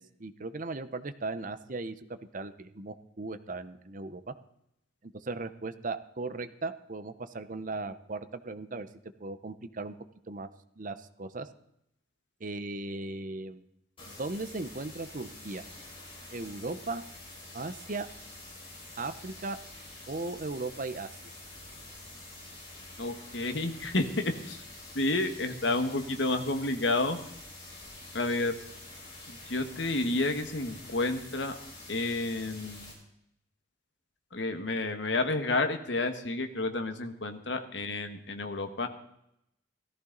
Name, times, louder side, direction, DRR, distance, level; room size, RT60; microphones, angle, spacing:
voice 1, 0.0-4.3 5.2-8.9 9.2-9.9 10.3-10.5 10.8-11.5 12.4-13.6 14.1-15.6 16.3-17.0 17.5-18.1 19.0-19.6 20.1-21.1, right 3 dB, 45° right, 11 dB, 0.9 m, -37 dB
sound 1, 14.0-32.9, left 2 dB, 30° left, 5.5 m, -47 dB
voice 2, 23.0-24.6 24.9-27.2 28.1-28.5 29.3-31.6 31.9-32.9 34.3-38.9, left 2 dB, 65° left, 7 dB, 1.5 m, -30 dB
16.5 x 14.5 x 4.0 m, 0.78 s
head